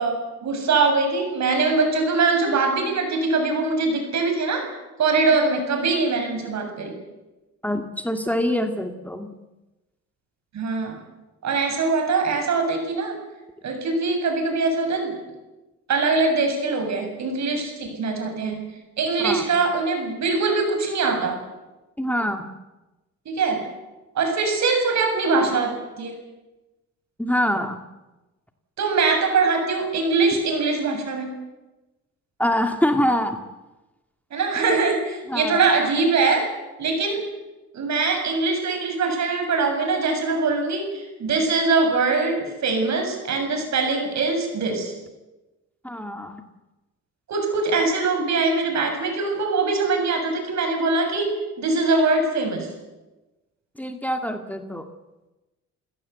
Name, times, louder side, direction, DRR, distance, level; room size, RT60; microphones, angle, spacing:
voice 1, 0.0-4.7 5.0-7.0 10.5-11.0 11.4-13.2 13.6-15.1 15.9-21.4 23.3-23.7 24.2-26.2 28.8-31.3 34.3-36.5 36.8-37.2 37.7-44.9 47.3-52.7, right 3 dB, 65° right, 4 dB, 7.3 m, -22 dB
voice 2, 7.6-9.3 19.2-19.5 22.0-22.5 27.2-27.8 32.4-33.4 35.3-35.6 45.8-46.4 53.8-54.9, equal, 5° left, 6 dB, 2.0 m, -24 dB
30.0 x 17.0 x 8.2 m, 1.1 s
cardioid pair, 90°, 30 cm